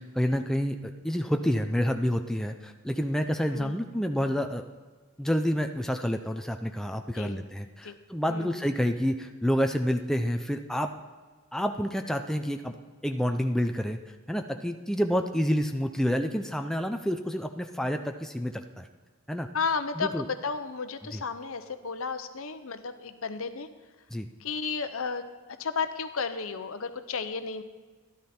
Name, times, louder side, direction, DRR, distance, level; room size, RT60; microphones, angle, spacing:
voice 1, 0.0-4.6 5.2-10.9 11.5-12.8 13.0-14.0 14.3-18.9 19.3-19.5 20.0-20.2 21.1-21.2 24.1-24.3, equal, ahead, 5 dB, 0.4 m, -28 dB
voice 2, 8.3-8.6 19.5-23.7 24.4-25.3 25.6-27.6, left 5 dB, 70° left, 10 dB, 0.8 m, -33 dB
13.0 x 12.0 x 4.3 m, 1.4 s
head